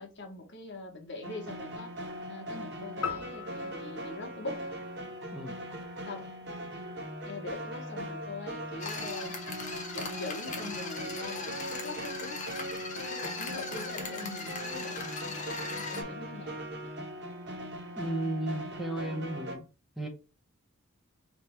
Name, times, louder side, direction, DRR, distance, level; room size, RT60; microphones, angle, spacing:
voice 1, 0.0-1.9 2.3-4.6 6.0-6.3 7.2-9.4 9.9-12.4 12.9-16.6, left 3 dB, 55° left, 1.2 m, -42 dB
sound 1, 1.2-19.6, equal, 50° right, 1.2 m, -40 dB
sound 2, 3.0-5.5, left 6 dB, 75° left, 0.6 m, -40 dB
sound 3, 8.8-16.0, left 3 dB, 35° left, 1.2 m, -39 dB
voice 2, 18.0-19.6 20.0-20.1, right 1 dB, ahead, 0.8 m, -34 dB
3.5 x 3.3 x 4.3 m
head